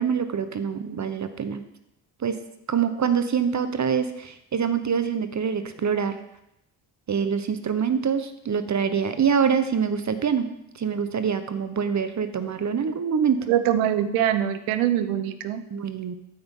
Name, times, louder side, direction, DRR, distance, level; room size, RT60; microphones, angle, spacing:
voice 1, 0.0-1.6 2.2-2.4 2.7-6.2 7.1-10.5 10.7-13.4 15.7-16.1, right 7 dB, 35° right, 10 dB, 0.8 m, -25 dB
voice 2, 13.5-15.6, right 11 dB, 85° right, 11 dB, 0.8 m, -23 dB
13.0 x 5.6 x 3.7 m, 0.83 s
supercardioid pair, 60°, 48 cm